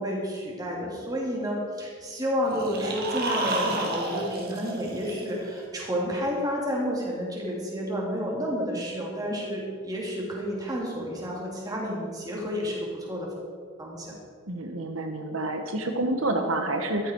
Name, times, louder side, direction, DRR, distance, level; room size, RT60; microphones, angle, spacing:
voice 1, 0.0-13.3 13.8-14.1, equal, 15° right, -3 dB, 3.0 m, -30 dB
sound 1, 2.5-5.6, right 2 dB, 45° right, 2.2 m, -31 dB
voice 2, 14.5-17.1, right 2 dB, 80° right, 4 dB, 1.3 m, -28 dB
14.5 x 13.0 x 4.7 m, 2.1 s
head